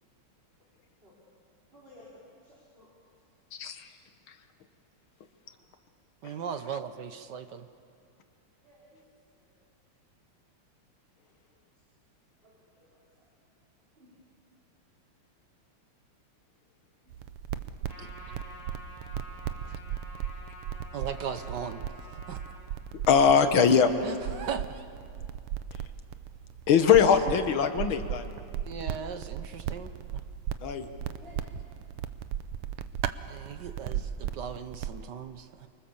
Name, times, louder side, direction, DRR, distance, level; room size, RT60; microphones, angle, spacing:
voice 1, 1.7-2.9 4.0-4.1 5.4-5.7 8.6-9.0 9.4-9.5 11.2-11.3 12.4-12.6 12.9-13.2 13.9-14.1 17.0-17.1 18.1-18.4 31.1-31.6, left 1 dB, 25° right, -7 dB, 5.2 m, -56 dB
voice 2, 3.5-3.9 23.1-23.9 26.7-28.3 30.6-30.9, left 7 dB, 65° left, 8 dB, 2.0 m, -21 dB
voice 3, 6.2-7.7 18.0-18.1 20.9-21.8 22.3-22.4 24.0-24.9 26.8-27.0 28.6-30.2 33.2-35.7, right 7 dB, 60° right, 9 dB, 1.4 m, -38 dB
sound 1, 17.1-35.0, right 9 dB, 80° right, 1.7 m, -37 dB
Trumpet, 17.9-22.6, equal, 25° left, 7.1 m, -48 dB
29.5 x 24.5 x 7.3 m, 2.4 s
omnidirectional pair, 2.4 m